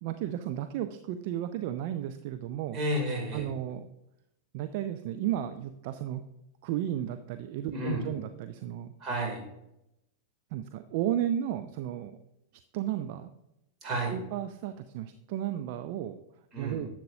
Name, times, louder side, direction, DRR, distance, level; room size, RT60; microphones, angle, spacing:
voice 1, 0.0-2.8 3.3-3.8 4.5-6.2 6.6-8.9 10.5-12.2 12.7-13.3 14.1-16.2 16.6-16.9, right 11 dB, 50° right, 9 dB, 0.4 m, -33 dB
voice 2, 2.7-3.5 7.7-8.1 9.0-9.4 13.8-14.1 16.5-16.8, right 1 dB, 30° right, 1 dB, 2.8 m, -31 dB
10.5 x 7.6 x 2.7 m, 0.86 s
figure-of-eight pair, 90°, 0 cm